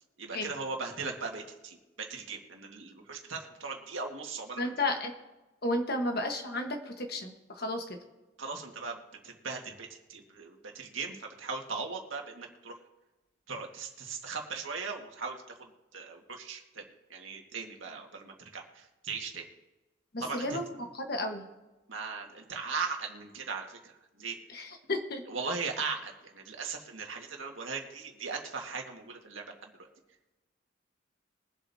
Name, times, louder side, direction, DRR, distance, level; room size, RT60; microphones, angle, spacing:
voice 1, 0.2-4.7 8.4-12.8 13.5-16.8 17.1-19.5 20.2-20.6 21.9-24.4 25.3-29.9, right 4 dB, 90° right, 2 dB, 1.9 m, -39 dB
voice 2, 4.6-5.1 5.6-8.0 20.1-21.5 24.5-25.2, left 1 dB, 55° left, 4 dB, 1.4 m, -33 dB
22.5 x 7.9 x 2.8 m, 1.1 s
head